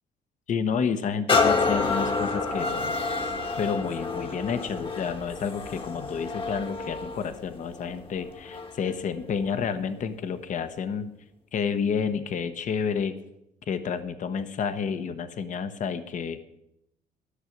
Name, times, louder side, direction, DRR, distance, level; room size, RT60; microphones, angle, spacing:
voice 1, 0.5-3.0 3.6-11.1 11.5-13.1 13.7-16.4, left 6 dB, 50° left, 11 dB, 1.0 m, -30 dB
sound 1, 1.3-8.9 9.5-9.6, left 4 dB, 30° left, 1.4 m, -28 dB
11.5 x 6.4 x 9.2 m, 0.83 s
cardioid pair, 110°, 17 cm